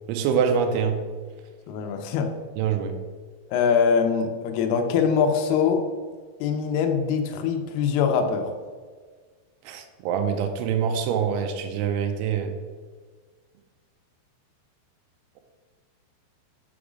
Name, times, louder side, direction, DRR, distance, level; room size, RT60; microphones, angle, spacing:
voice 1, 0.1-1.0 2.6-3.0 9.7-12.5, right 7 dB, 85° right, 5 dB, 2.3 m, -25 dB
voice 2, 1.7-2.3 3.5-5.8 6.4-8.5, left 6 dB, 80° left, 4 dB, 2.3 m, -23 dB
6.2 x 5.2 x 4.9 m, 1.5 s
omnidirectional pair, 5.3 m